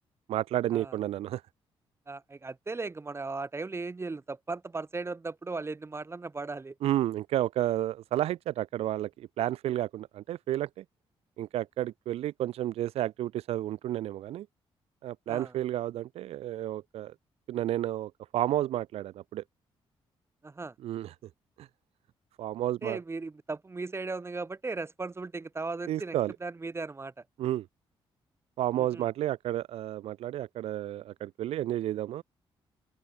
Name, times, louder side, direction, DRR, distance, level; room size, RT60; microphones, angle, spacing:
voice 1, 0.3-1.4 6.8-10.8 11.4-14.5 15.0-17.1 17.5-19.4 20.8-21.1 21.6-21.7 22.4-23.0 25.9-26.3 27.4-27.7 28.6-32.2, right 13 dB, 90° right, 1.1 m, -31 dB
voice 2, 2.1-6.8 15.3-15.5 20.4-20.7 22.8-27.1 28.7-29.0, right 3 dB, 25° right, 3.2 m, -37 dB
open air
cardioid pair, 95°, 10 cm